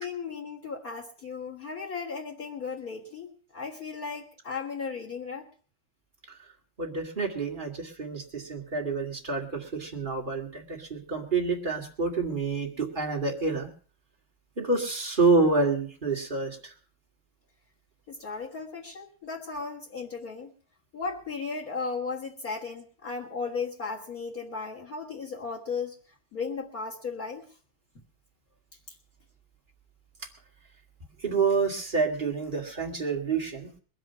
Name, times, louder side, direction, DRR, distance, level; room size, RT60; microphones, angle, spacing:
voice 1, 0.0-5.5 18.1-20.5 20.9-26.0 26.3-27.4, left 4 dB, 75° left, 3 dB, 0.8 m, -35 dB
voice 2, 6.8-13.7 14.6-16.6 31.2-33.7, right 4 dB, 20° right, 0 dB, 1.3 m, -28 dB
21.5 x 7.7 x 5.8 m, 0.42 s
omnidirectional pair, 4.4 m